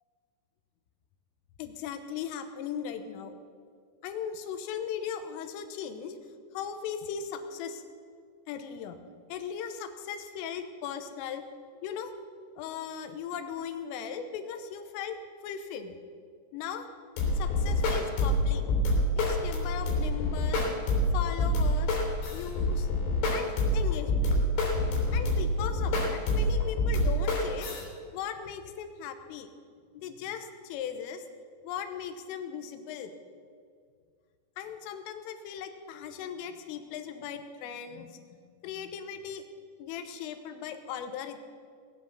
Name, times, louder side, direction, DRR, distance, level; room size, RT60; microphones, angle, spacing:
voice 1, 1.6-3.4 4.0-6.2 6.5-7.8 8.5-9.0 9.3-11.5 11.8-12.1 12.6-15.2 15.4-16.0 16.5-16.9 17.4-18.7 19.2-20.7 21.1-22.1 22.3-22.9 23.3-24.6 25.1-29.5 29.9-31.3 31.6-33.1 34.6-38.4 38.6-39.5 39.8-41.4, left 8 dB, 85° left, 8 dB, 3.5 m, -38 dB
sound 1, 17.2-27.8, left 1 dB, 65° left, 5.7 m, -27 dB
20.0 x 8.1 x 6.9 m, 2.1 s
omnidirectional pair, 5.8 m